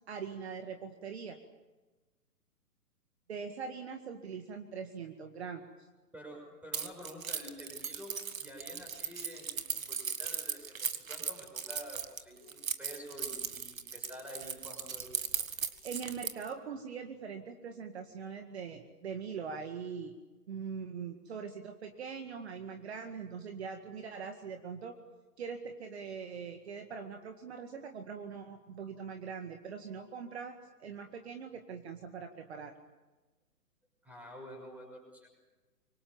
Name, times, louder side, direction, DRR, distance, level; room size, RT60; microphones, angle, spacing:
voice 1, 0.1-1.4 3.3-5.9 15.8-20.1 20.5-25.0 25.4-32.7, right 6 dB, 40° right, 6 dB, 2.0 m, -42 dB
voice 2, 6.1-15.2 34.0-35.4, equal, 5° right, 1 dB, 6.4 m, -49 dB
Keys jangling, 6.7-16.5, right 6 dB, 55° right, 2.0 m, -37 dB
26.0 x 24.5 x 7.3 m, 1.2 s
figure-of-eight pair, 130°, 48 cm